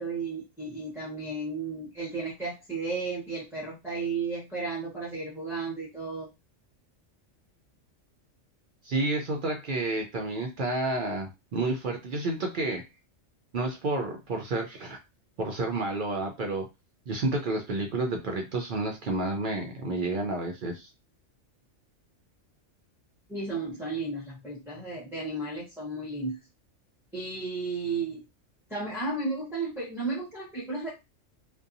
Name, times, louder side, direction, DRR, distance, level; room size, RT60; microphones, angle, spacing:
voice 1, 0.0-6.3 23.3-26.4 27.1-28.2 28.7-30.9, right 3 dB, ahead, -6 dB, 0.7 m, -33 dB
voice 2, 8.8-12.9 13.5-15.0 15.4-16.7 17.1-20.9, right 2 dB, 60° right, 2 dB, 0.5 m, -30 dB
2.6 x 2.2 x 2.5 m, 0.24 s
omnidirectional pair, 1.3 m